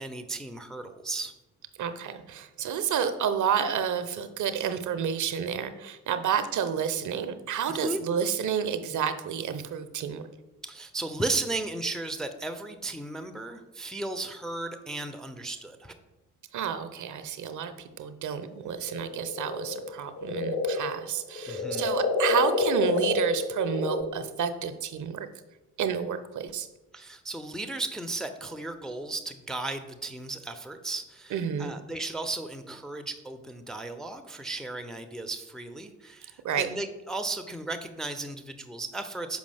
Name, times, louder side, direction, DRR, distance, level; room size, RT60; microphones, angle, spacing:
voice 1, 0.0-1.3 7.7-8.0 10.6-15.9 21.5-21.8 26.9-31.3 31.6-39.4, right 2 dB, ahead, 8 dB, 0.5 m, -35 dB
voice 2, 1.8-10.2 16.5-25.3 25.8-26.7 31.3-31.7 36.4-36.7, right 7 dB, 45° right, 11 dB, 0.6 m, -30 dB
sound 1, 18.3-24.0, left 3 dB, 55° left, 1.5 m, -28 dB
6.2 x 5.1 x 3.4 m, 1.0 s
figure-of-eight pair, 40°, 42 cm